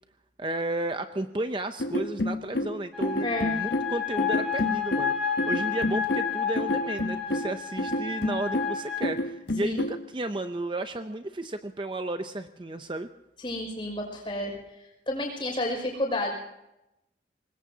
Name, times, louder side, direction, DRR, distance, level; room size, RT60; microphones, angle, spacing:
voice 1, 0.4-13.1, right 2 dB, 25° right, 8 dB, 0.6 m, -33 dB
sound 1, 1.8-10.0, left 1 dB, 75° left, 1.0 m, -30 dB
sound 2, 2.9-9.1, left 7 dB, ahead, 3.8 m, -31 dB
voice 2, 3.2-3.5 9.6-9.8 13.4-14.6 15.1-16.3, left 1 dB, 30° left, 1 dB, 5.9 m, -30 dB
24.5 x 21.0 x 2.8 m, 0.89 s
head